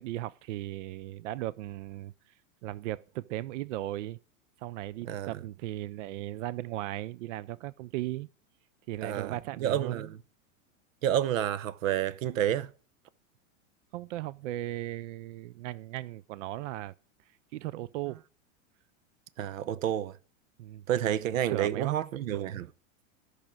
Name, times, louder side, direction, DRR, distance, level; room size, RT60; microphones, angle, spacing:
voice 1, 0.0-2.1 2.6-4.2 4.6-8.3 8.9-10.1 13.9-16.9 17.5-18.2 19.7-19.8 20.6-22.0, right 15 dB, 65° right, 0.6 m, -37 dB
voice 2, 9.0-10.2 11.0-12.7 19.4-20.2 20.9-22.7, right 11 dB, 90° right, 0.9 m, -30 dB
13.0 x 6.4 x 8.7 m
supercardioid pair, 150°, 39 cm